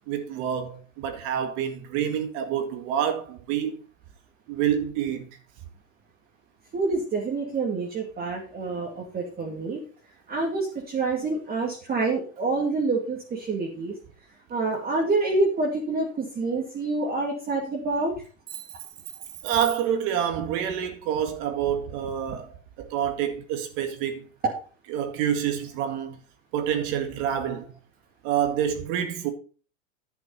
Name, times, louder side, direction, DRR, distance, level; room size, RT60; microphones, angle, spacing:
voice 1, 0.1-3.8 4.5-5.3 19.4-22.5 22.8-24.3 24.9-26.2 26.5-27.7 28.2-29.3, right 9 dB, 50° right, 2.1 m, -27 dB
voice 2, 6.7-9.8 10.3-13.9 14.5-18.1, right 3 dB, 25° right, 2.4 m, -27 dB
10.5 x 6.0 x 5.5 m
supercardioid pair, 130°, 40 cm